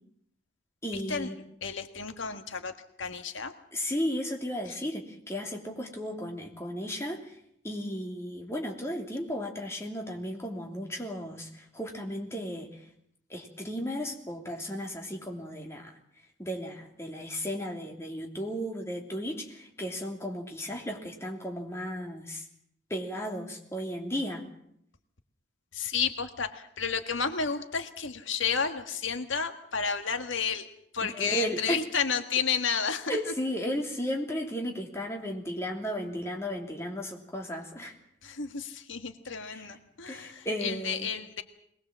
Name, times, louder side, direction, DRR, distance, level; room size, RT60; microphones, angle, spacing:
voice 1, 0.8-1.4 3.7-7.4 7.6-12.8 13.3-16.0 16.4-22.4 22.9-24.4 31.0-31.8 33.1-38.0 39.4-39.8 40.1-41.1, equal, 15° left, 1 dB, 2.9 m, -35 dB
voice 2, 1.6-2.7 3.0-3.5 25.7-30.7 30.9-33.2 38.2-41.4, left 6 dB, 80° left, 7 dB, 1.6 m, -31 dB
22.5 x 20.0 x 7.5 m, 0.70 s
head